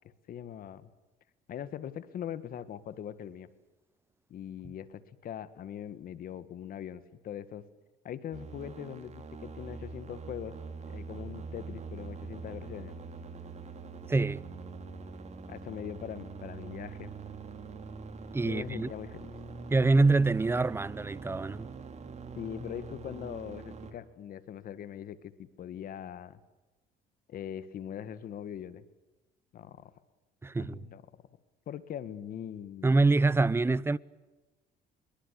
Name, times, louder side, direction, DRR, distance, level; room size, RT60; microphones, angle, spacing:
voice 1, 0.3-0.9 1.5-3.5 4.3-7.6 8.0-10.5 10.8-12.9 15.5-17.1 18.4-19.3 22.4-26.4 27.3-28.8 29.5-29.9 30.6-31.0 31.7-33.1, left 9 dB, 60° left, 1.9 m, -41 dB
sound 1, 8.3-23.9, right 4 dB, 40° right, 3.6 m, -44 dB
voice 2, 14.1-14.4 18.3-18.9 19.7-21.7 30.4-30.8 32.8-34.0, right 3 dB, 15° right, 0.8 m, -25 dB
26.0 x 23.0 x 8.4 m
cardioid pair, 110°, 17 cm